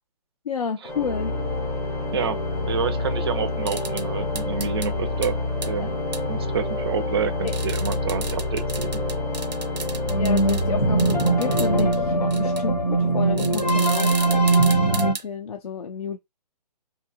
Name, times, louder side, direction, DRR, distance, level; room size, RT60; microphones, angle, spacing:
voice 1, 0.5-1.3 5.8-5.9 7.4-7.5 10.2-16.2, left 6 dB, 65° left, 0.4 m, -31 dB
Organ, 0.8-12.7, left 2 dB, 10° left, 0.6 m, -28 dB
voice 2, 2.1-5.4 5.6-6.0 6.3-9.0, right 7 dB, 40° right, 0.4 m, -28 dB
sound 1, 3.7-4.0 4.4-4.9 5.2-5.3 5.6-5.7 6.1-6.2 7.5-10.6 11.0-12.0 12.3-12.6 13.4-15.2, right 4 dB, 85° right, 0.6 m, -34 dB
sound 2, 10.1-15.1, right 2 dB, 85° left, 0.8 m, -21 dB
2.8 x 2.2 x 2.5 m
figure-of-eight pair, 135°, 21 cm